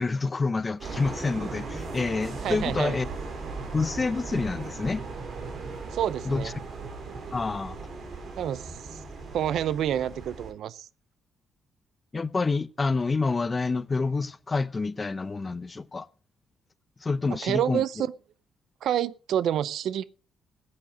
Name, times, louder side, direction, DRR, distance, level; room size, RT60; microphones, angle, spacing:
voice 1, 0.0-3.1 3.7-5.0 6.2-6.5 7.3-7.8 12.1-16.1 17.0-17.8, left 4 dB, 25° left, 0.7 m, -28 dB
sound 1, 0.8-10.5, right 4 dB, 55° right, 3.5 m, -37 dB
voice 2, 2.4-3.0 5.9-6.5 8.4-9.0 9.3-10.9 17.4-18.1 18.8-20.1, right 10 dB, 75° right, 0.6 m, -28 dB
15.0 x 8.7 x 5.2 m
cardioid pair, 90°, 0 cm